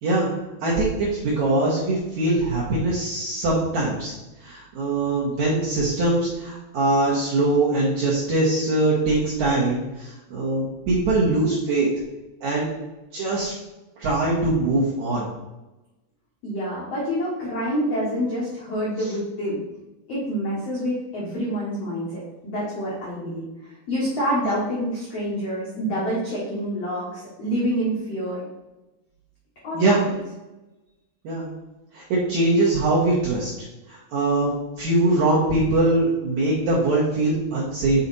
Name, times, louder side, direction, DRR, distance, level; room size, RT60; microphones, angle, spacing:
voice 1, 0.6-4.1 4.4-11.9 12.4-12.7 13.1-13.5 14.0-15.3 29.7-30.0 31.2-31.5 31.9-33.5 33.9-34.5 34.8-38.0, right 2 dB, 70° right, -6 dB, 1.8 m, -22 dB
voice 2, 16.4-19.6 20.1-28.4 29.6-29.8, equal, 80° left, -5 dB, 1.4 m, -27 dB
7.3 x 4.2 x 4.1 m, 1.0 s
omnidirectional pair, 5.0 m